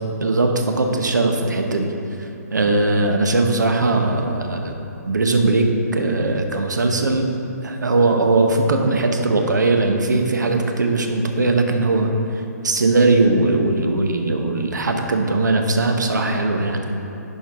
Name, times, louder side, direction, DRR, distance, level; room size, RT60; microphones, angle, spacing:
voice 1, 0.2-1.9 2.5-5.7 5.9-7.3 7.6-12.1 12.6-16.8, right 2 dB, 90° right, 4 dB, 0.9 m, -19 dB
10.5 x 4.6 x 3.5 m, 2.9 s
hypercardioid pair, 145°, 9 cm